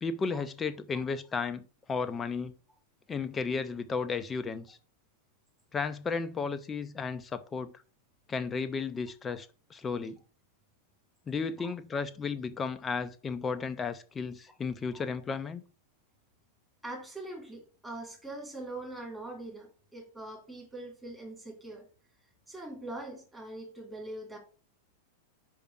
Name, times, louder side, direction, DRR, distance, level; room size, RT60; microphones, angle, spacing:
voice 1, 0.0-2.5 3.1-4.8 5.7-7.7 8.3-10.2 11.3-15.6, left 5 dB, 20° left, 0.6 m, -34 dB
voice 2, 16.8-21.9 22.5-24.4, right 2 dB, 10° right, 2.8 m, -42 dB
5.6 x 5.2 x 5.9 m
figure-of-eight pair, 90°, 0 cm